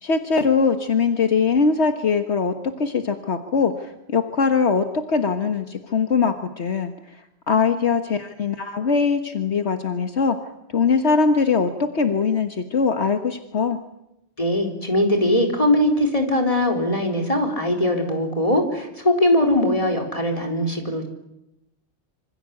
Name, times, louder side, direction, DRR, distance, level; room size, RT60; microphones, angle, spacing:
voice 1, 0.0-6.9 7.5-10.4 10.7-13.8, left 5 dB, 70° left, 7 dB, 1.7 m, -21 dB
voice 2, 14.4-21.1, left 1 dB, 30° left, 3 dB, 4.2 m, -21 dB
26.5 x 26.0 x 8.5 m, 0.87 s
omnidirectional pair, 1.2 m